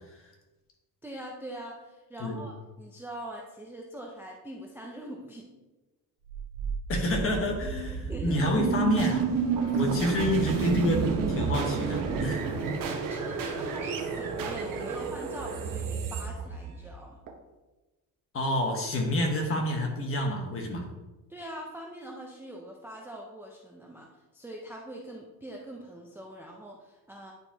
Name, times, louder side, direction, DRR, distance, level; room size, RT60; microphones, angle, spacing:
voice 1, 1.0-5.5 7.9-8.5 10.0-10.2 13.1-17.2 21.3-24.1 24.3-27.3, right 1 dB, 5° right, -1 dB, 0.4 m, -43 dB
sound 1, 6.3-17.3, right 5 dB, 60° right, 0.9 m, -30 dB
voice 2, 6.9-9.3 9.7-12.5 18.3-20.8, left 1 dB, 35° left, 1 dB, 1.2 m, -28 dB
9.8 x 4.5 x 2.8 m, 1.1 s
cardioid pair, 175°, 38 cm